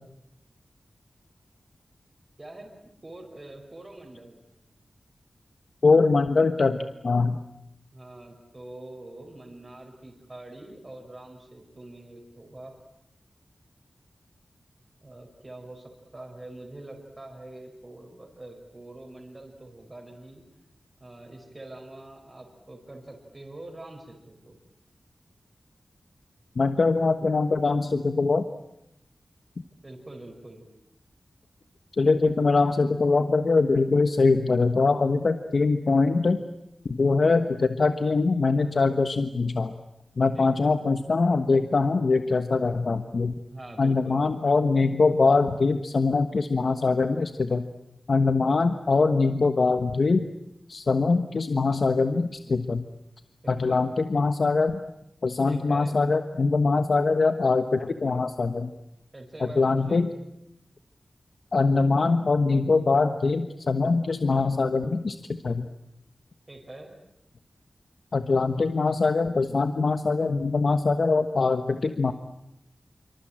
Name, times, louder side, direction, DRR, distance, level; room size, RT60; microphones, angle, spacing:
voice 1, 2.4-2.7 3.0-4.4 7.9-12.8 15.0-20.4 21.0-24.6 29.8-30.6 40.3-40.7 43.5-44.2 53.4-53.9 55.5-56.0 59.1-60.1 66.5-66.9, right 2 dB, 30° right, 1 dB, 5.2 m, -44 dB
voice 2, 5.8-6.8 7.0-7.4 26.6-28.4 32.0-36.4 36.8-39.7 40.2-43.3 43.8-47.6 48.1-50.2 50.7-52.8 53.5-54.8 55.2-58.7 59.6-60.1 61.5-65.2 65.4-65.7 68.1-72.1, left 3 dB, 65° left, 8 dB, 1.3 m, -23 dB
26.0 x 25.0 x 8.9 m, 0.82 s
wide cardioid pair, 85°, 0 cm